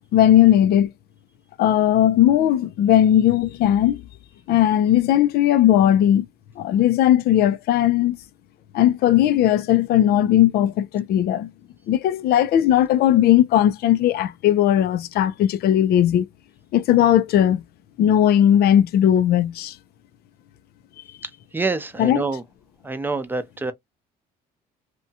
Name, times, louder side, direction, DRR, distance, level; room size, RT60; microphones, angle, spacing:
voice 1, 0.1-0.9 1.6-4.0 4.5-6.3 6.6-8.2 8.7-11.5 11.9-16.3 16.7-17.6 18.0-19.7 22.0-22.2, left 11 dB, 65° left, 0.4 m, -17 dB
voice 2, 21.5-22.4 22.8-23.7, right 3 dB, 10° right, 0.5 m, -26 dB
2.8 x 2.2 x 2.6 m
cardioid pair, 110°, 17 cm